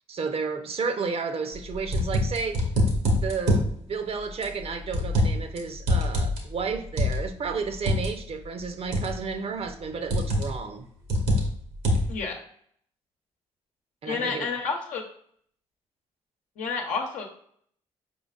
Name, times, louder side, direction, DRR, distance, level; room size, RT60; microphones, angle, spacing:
voice 1, 0.0-2.7 3.2-10.9 14.0-14.5, right 5 dB, 50° right, 7 dB, 0.6 m, -32 dB
sound 1, 1.6-3.7 4.4-5.6 5.8-8.1 8.9-9.3 10.1-10.6 11.1-12.2, left 1 dB, 80° right, 1.1 m, -24 dB
voice 2, 12.1-12.4 14.0-15.0 16.6-17.3, left 5 dB, 75° left, 1 dB, 0.9 m, -30 dB
4.9 x 3.8 x 2.4 m, 0.64 s
hypercardioid pair, 50°, 13 cm